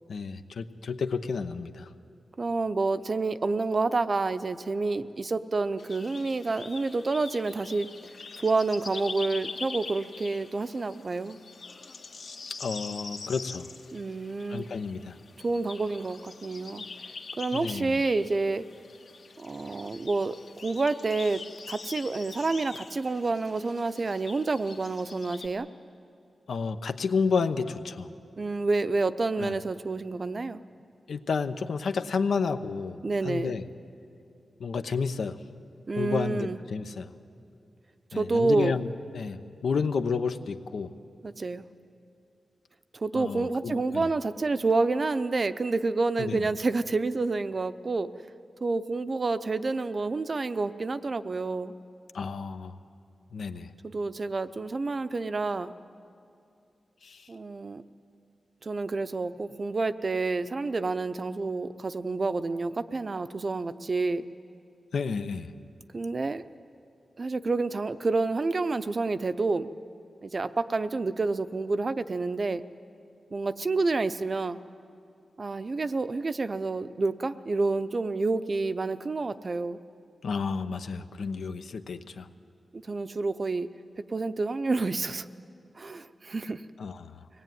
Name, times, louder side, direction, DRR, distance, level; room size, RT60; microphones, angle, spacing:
voice 1, 0.1-1.9 12.6-13.7 14.5-15.1 17.5-18.0 26.5-28.1 29.4-29.5 31.1-33.0 33.2-33.6 34.6-35.4 36.0-37.1 38.1-40.9 43.1-44.1 46.2-46.4 52.1-52.7 53.3-53.7 57.0-57.2 64.9-65.5 80.2-82.3 86.8-87.1, left 5 dB, 85° left, 9 dB, 0.9 m, -31 dB
voice 2, 2.4-7.9 8.4-11.4 13.9-14.7 15.4-17.1 17.4-18.6 19.4-21.4 21.7-25.7 28.4-30.6 33.0-33.5 35.9-36.6 38.1-38.8 41.2-41.6 42.9-48.1 48.6-51.7 53.8-55.7 57.3-57.8 58.6-64.2 65.9-66.5 67.2-69.7 70.2-72.6 73.3-74.6 75.4-79.8 82.7-83.7 84.1-85.3 85.8-86.6, right 3 dB, 35° right, 12 dB, 0.6 m, -29 dB
sound 1, 5.8-25.5, left 4 dB, 65° left, 1.5 m, -43 dB
24.0 x 19.0 x 9.3 m, 2.5 s
wide cardioid pair, 150°, 0 cm